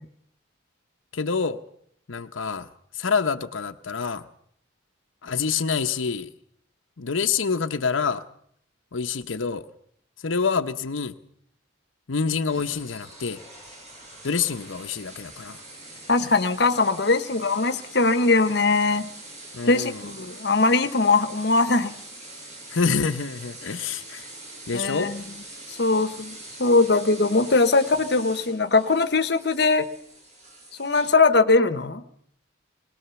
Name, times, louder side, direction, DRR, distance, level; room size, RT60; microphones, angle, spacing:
voice 1, 1.1-1.6 2.1-2.7 2.9-4.2 5.2-6.3 7.0-8.2 8.9-9.7 10.2-11.2 12.1-13.4 14.2-15.6 19.5-20.0 22.7-24.3 24.7-25.1, left 5 dB, 85° left, 6 dB, 0.9 m, -27 dB
sound 1, 12.5-31.1, right 2 dB, 35° right, 5.6 m, -43 dB
voice 2, 16.1-19.1 19.7-21.9 24.7-25.2 25.7-29.9 30.8-32.0, left 3 dB, 55° left, 11 dB, 1.0 m, -21 dB
21.0 x 19.0 x 7.0 m, 0.66 s
head